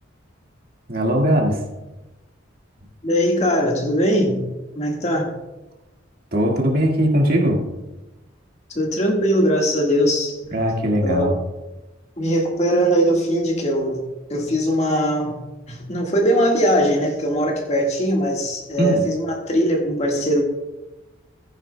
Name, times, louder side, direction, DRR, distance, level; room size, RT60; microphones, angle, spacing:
voice 1, 0.9-1.6 6.3-7.6 10.5-11.3 18.8-19.0, right 1 dB, 50° right, 0 dB, 1.8 m, -19 dB
voice 2, 3.0-4.4 4.7-5.3 8.7-10.4 11.0-11.3 12.2-14.0 14.3-15.3 15.7-20.4, equal, 35° left, 1 dB, 1.6 m, -20 dB
15.5 x 9.6 x 2.2 m, 1.0 s
head